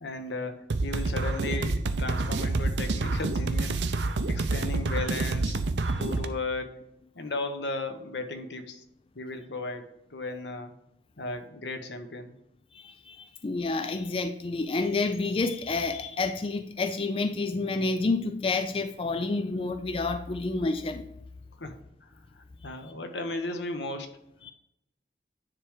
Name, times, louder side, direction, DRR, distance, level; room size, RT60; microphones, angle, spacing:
voice 1, 0.0-3.8 4.3-5.6 6.0-6.8 7.2-8.8 9.1-10.7 11.2-12.3 21.6-21.7 22.6-24.1, left 2 dB, 90° left, 6 dB, 1.0 m, -35 dB
sound 1, 0.7-6.3, right 3 dB, 85° right, 0.6 m, -28 dB
voice 2, 12.7-21.1 24.4-24.5, left 3 dB, 30° left, 8 dB, 0.4 m, -29 dB
9.8 x 3.3 x 4.9 m, 0.78 s
head